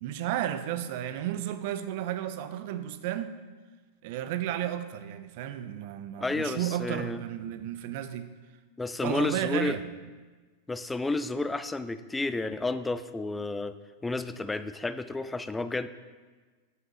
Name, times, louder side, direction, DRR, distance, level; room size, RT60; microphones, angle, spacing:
voice 1, 0.0-3.3 4.0-8.3 9.0-9.8, right 12 dB, 50° right, 11 dB, 0.5 m, -33 dB
voice 2, 6.2-7.2 8.8-9.8 10.7-13.8 14.0-15.9, left 3 dB, 10° left, 12 dB, 0.4 m, -31 dB
7.7 x 5.8 x 5.0 m, 1.4 s
figure-of-eight pair, 90°, 0 cm